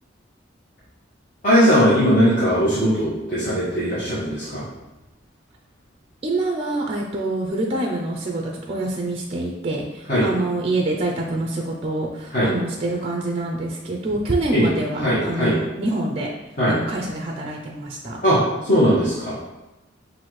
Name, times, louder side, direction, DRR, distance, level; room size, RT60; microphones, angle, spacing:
voice 1, 1.4-4.6 10.1-10.3 12.3-12.5 14.5-14.7 15.0-15.5 16.6-16.7 18.2-19.4, equal, 45° left, -10 dB, 1.3 m, -19 dB
voice 2, 6.2-16.3 16.6-18.2, right 2 dB, 30° right, 0 dB, 0.4 m, -26 dB
5.8 x 2.6 x 3.1 m, 0.98 s
head